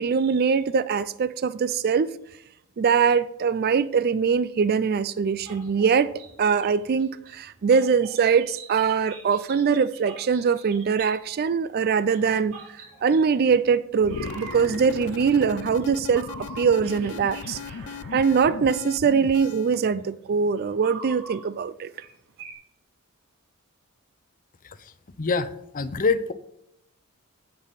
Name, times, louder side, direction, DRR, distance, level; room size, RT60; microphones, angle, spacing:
voice 1, 0.0-2.1 2.8-6.1 6.4-12.6 13.0-17.6 18.1-21.9, right 6 dB, 45° right, 0.4 m, -22 dB
sound 1, 5.4-11.5 12.1-13.7 14.0-19.6 20.6-21.4 22.0-22.1 22.4-22.5, right 4 dB, 65° right, 3.4 m, -44 dB
sound 2, 14.0-19.8, left 6 dB, 80° left, 0.4 m, -37 dB
voice 2, 25.2-26.3, left 4 dB, 40° left, 0.6 m, -26 dB
15.5 x 5.4 x 4.1 m
head